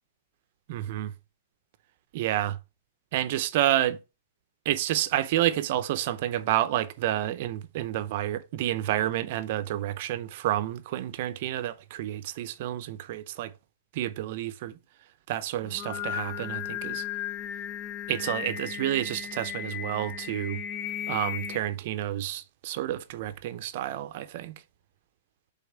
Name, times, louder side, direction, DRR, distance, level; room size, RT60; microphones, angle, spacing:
voice 1, 0.7-1.1 2.1-2.6 3.1-4.0 4.6-13.5 13.9-14.8 15.3-17.0 18.1-20.6 21.1-24.6, right 13 dB, 50° right, 0.6 m, -29 dB
Singing, 15.6-21.6, left 10 dB, 25° left, 0.7 m, -35 dB
5.3 x 4.1 x 6.0 m
hypercardioid pair, 145°, 0 cm